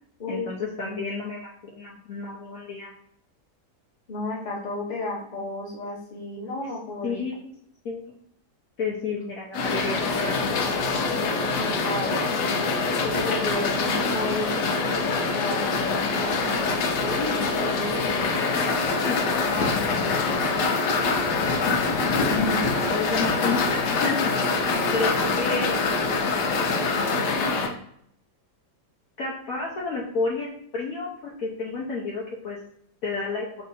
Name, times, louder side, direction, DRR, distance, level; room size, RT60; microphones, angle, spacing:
voice 1, 0.3-2.9 7.0-7.5 7.8-8.2 8.8-10.7 18.5-19.8 22.2-24.3 24.9-25.9 29.2-32.6 33.0-33.5, left 4 dB, 60° left, -4 dB, 1.1 m, -31 dB
voice 2, 4.1-7.2 11.6-12.3 13.0-18.5 24.7-24.9, left 2 dB, 30° left, -4 dB, 1.2 m, -33 dB
sound 1, 9.5-27.7, left 4 dB, 85° left, 1.4 m, -24 dB
4.6 x 2.8 x 4.1 m, 0.68 s
omnidirectional pair, 1.8 m